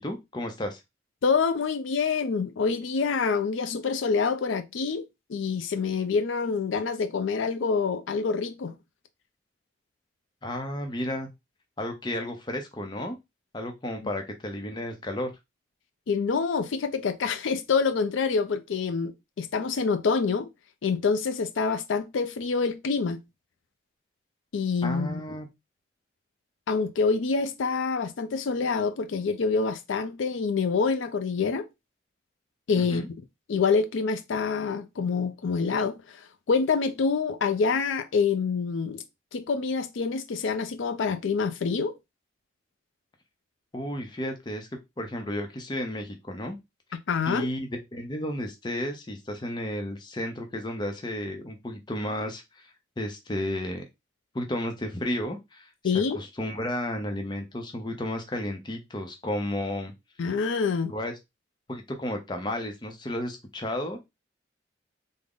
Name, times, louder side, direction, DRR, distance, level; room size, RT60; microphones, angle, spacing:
voice 1, 0.0-0.8 10.4-11.3 11.8-13.2 13.5-15.3 24.8-25.5 32.8-33.1 43.7-44.7 45.0-46.6 47.3-52.7 53.0-53.8 54.3-59.9 60.9-61.1 61.7-64.0, left 1 dB, 25° left, 0.5 m, -33 dB
voice 2, 1.2-5.0 5.3-8.7 16.1-20.5 20.8-23.2 24.5-25.2 26.7-31.6 32.7-33.0 33.5-36.2 36.5-39.0 39.3-41.9 46.9-47.5 55.8-56.2 60.2-60.9, left 5 dB, 80° left, 0.4 m, -26 dB
3.6 x 2.0 x 3.6 m
head